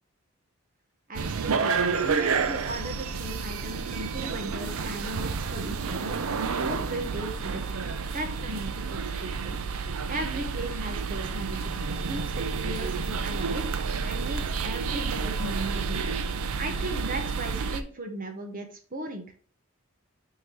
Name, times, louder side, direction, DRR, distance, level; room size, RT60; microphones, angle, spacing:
voice 1, 1.1-7.9 8.1-19.3, right 1 dB, 40° right, 4 dB, 1.0 m, -37 dB
sound 1, 1.1-17.8, right 5 dB, 85° right, 0.6 m, -30 dB
8.6 x 3.9 x 3.2 m, 0.43 s
head